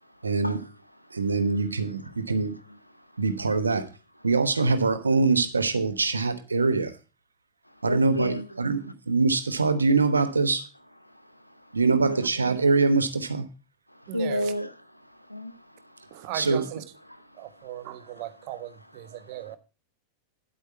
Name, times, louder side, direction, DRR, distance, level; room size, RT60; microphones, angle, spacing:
voice 1, 0.2-0.6 1.1-2.6 3.2-3.9 4.2-7.0 7.8-10.7 11.7-13.5 16.3-16.6, right 4 dB, 75° right, 1.1 m, -24 dB
voice 2, 1.5-1.9 3.5-3.6 7.8-8.5 11.8-12.2 13.9-14.7 15.1-16.3, equal, 90° left, 0.8 m, -32 dB
voice 3, 14.1-14.5 16.1-16.8 17.3-19.6, right 14 dB, 45° right, 1.1 m, -37 dB
10.0 x 8.2 x 4.3 m
figure-of-eight pair, 90°, 0 cm